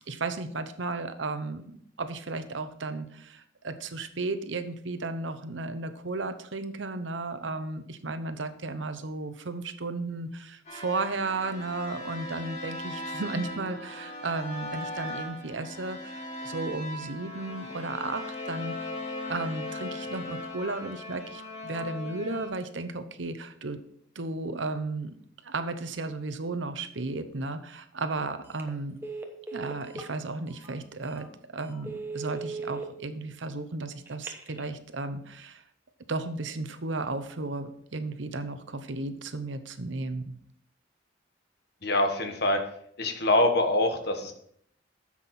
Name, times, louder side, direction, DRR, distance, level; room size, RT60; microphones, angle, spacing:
voice 1, 0.1-18.7 19.3-23.8 24.1-25.1 25.4-29.0 29.5-31.3 31.5-35.6 36.1-40.3, right 3 dB, 75° right, 10 dB, 0.9 m, -34 dB
sound 1, 10.7-22.5, left 2 dB, 35° left, 2.1 m, -38 dB
Telephone, 28.4-28.7 29.0-30.1 30.6-30.7 31.2-31.3 31.7-32.8 34.1-34.7, right 4 dB, 10° right, 1.0 m, -37 dB
voice 2, 41.8-42.6 43.0-44.3, left 2 dB, 55° left, 5 dB, 1.3 m, -24 dB
10.0 x 7.4 x 4.3 m, 0.66 s
head